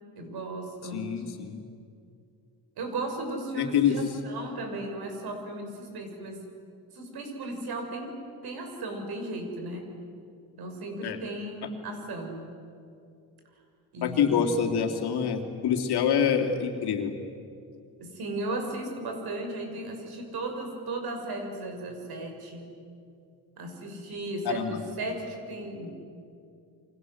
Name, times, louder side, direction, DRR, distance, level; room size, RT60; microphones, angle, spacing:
voice 1, 0.1-1.3 2.8-6.5 6.9-9.9 10.6-12.5 13.9-14.6 18.0-22.7 23.6-25.9, right 2 dB, 65° right, 4 dB, 6.3 m, -36 dB
voice 2, 0.9-1.6 3.6-4.0 11.0-11.2 14.0-17.1 24.4-24.8, left 7 dB, 65° left, 3 dB, 3.2 m, -26 dB
29.5 x 25.0 x 8.0 m, 2.5 s
cardioid pair, 110°, 41 cm